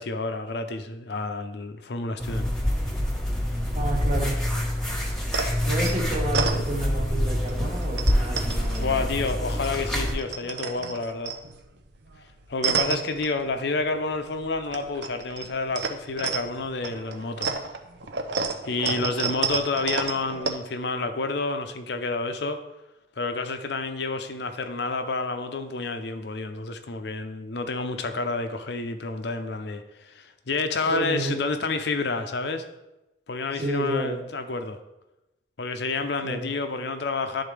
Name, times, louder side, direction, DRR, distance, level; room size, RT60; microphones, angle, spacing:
voice 1, 0.0-2.5 8.8-11.3 12.5-17.5 18.6-22.6 23.2-32.6 33.3-34.8 35.6-37.4, left 3 dB, 60° left, 7 dB, 0.6 m, -29 dB
sound 1, 2.2-10.1, equal, ahead, 1.3 m, -26 dB
voice 2, 3.7-4.3 5.6-9.0 18.9-19.1 30.8-31.4 33.5-34.3 36.2-36.5, right 1 dB, 40° right, 0 dB, 1.3 m, -30 dB
sound 2, 5.3-7.1 7.5-9.7 10.0-13.9 14.2-20.5, right 5 dB, 65° right, 0.7 m, -31 dB
11.0 x 3.9 x 3.3 m, 0.97 s
head